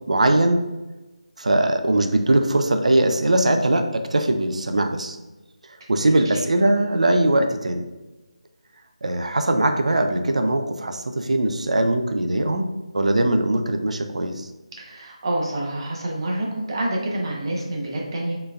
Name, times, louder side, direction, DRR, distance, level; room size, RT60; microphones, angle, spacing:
voice 1, 0.1-0.6 1.4-5.2 5.9-7.8 9.0-12.7 12.9-14.5, right 1 dB, 80° right, 6 dB, 0.5 m, -21 dB
voice 2, 14.9-18.4, right 1 dB, 45° right, -1 dB, 0.9 m, -27 dB
4.3 x 3.2 x 2.4 m, 1.1 s
figure-of-eight pair, 160°, 4 cm